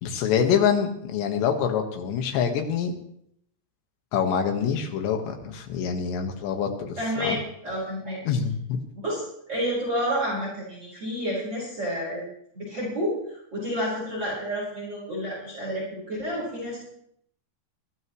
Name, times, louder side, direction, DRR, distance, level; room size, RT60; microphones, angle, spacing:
voice 1, 0.0-2.9 4.1-7.4 8.3-8.8, left 7 dB, 80° left, 4 dB, 3.8 m, -25 dB
voice 2, 7.0-8.2 9.0-9.2 9.5-12.2 12.5-16.8, equal, 25° right, -5 dB, 4.9 m, -30 dB
21.0 x 14.5 x 3.2 m, 0.71 s
omnidirectional pair, 5.0 m